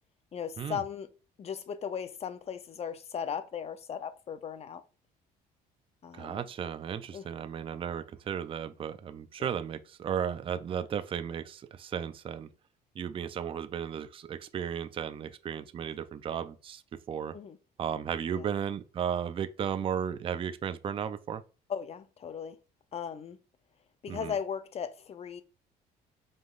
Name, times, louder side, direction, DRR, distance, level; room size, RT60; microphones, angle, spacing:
voice 1, 0.3-1.1 1.4-4.8 6.0-6.4 7.1-7.3 9.4-9.5 17.3-17.6 18.3-18.5 21.7-22.6 22.9-23.4 24.0-25.4, left 7 dB, 40° left, 0.6 m, -37 dB
voice 2, 6.1-12.5 13.0-17.3 17.8-21.4 24.1-24.3, right 8 dB, 30° right, 0.4 m, -35 dB
5.1 x 3.7 x 2.4 m
cardioid pair, 110°, 17 cm